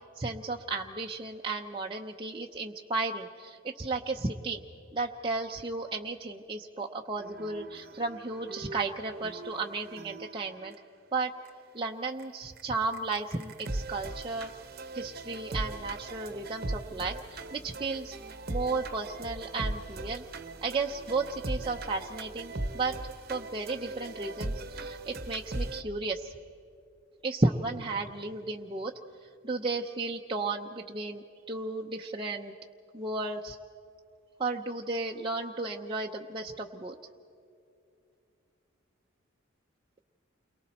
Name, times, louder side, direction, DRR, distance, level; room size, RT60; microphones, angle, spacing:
voice 1, 0.2-4.6 4.9-10.7 11.1-11.3 11.7-14.5 14.9-18.1 18.5-20.2 20.6-22.9 23.3-26.3 27.2-28.9 29.4-32.5 32.9-33.6 34.4-36.9, right 3 dB, 25° right, 0 dB, 0.7 m, -34 dB
sound 1, 7.2-10.7 11.4-11.5 12.2-12.3 12.6-12.7 12.9-25.8, right 2 dB, 50° right, 1.0 m, -39 dB
29.0 x 23.0 x 4.3 m, 2.6 s
head